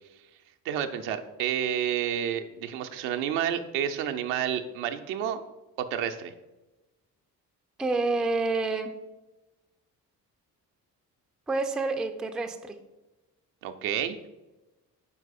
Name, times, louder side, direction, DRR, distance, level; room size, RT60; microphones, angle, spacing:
voice 1, 0.6-5.4 5.8-6.3 13.6-14.2, right 9 dB, 65° right, 7 dB, 0.6 m, -30 dB
voice 2, 7.8-8.9 11.5-12.8, right 3 dB, ahead, 6 dB, 0.3 m, -28 dB
5.5 x 4.6 x 4.0 m, 1.1 s
figure-of-eight pair, 45°, 48 cm